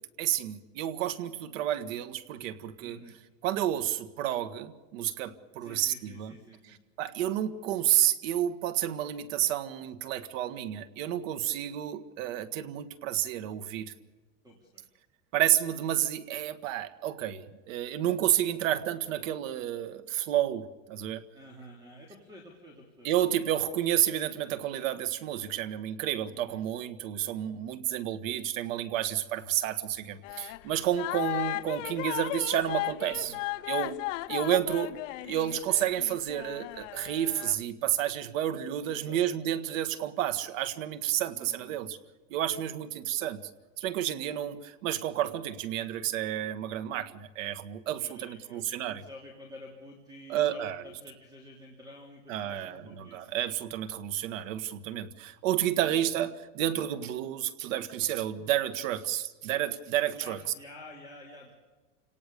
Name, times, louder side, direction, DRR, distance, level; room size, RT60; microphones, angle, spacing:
voice 1, 0.2-3.0 3.4-6.3 7.0-13.9 15.3-21.2 23.0-33.4 33.7-34.0 34.3-42.0 42.3-43.4 43.8-49.0 50.3-50.8 52.3-60.4, right 11 dB, 80° right, 12 dB, 1.9 m, -30 dB
voice 2, 2.8-3.2 5.6-6.8 14.4-14.8 21.3-23.1 26.3-26.6 33.1-33.4 38.9-39.2 41.3-41.8 48.0-53.2 55.8-56.2 60.1-61.5, left 1 dB, 10° right, 1 dB, 3.0 m, -50 dB
sound 1, 30.2-30.7 31.0-37.6, left 20 dB, 70° left, 0.8 m, -35 dB
29.0 x 18.5 x 6.9 m, 1.3 s
supercardioid pair, 165°, 38 cm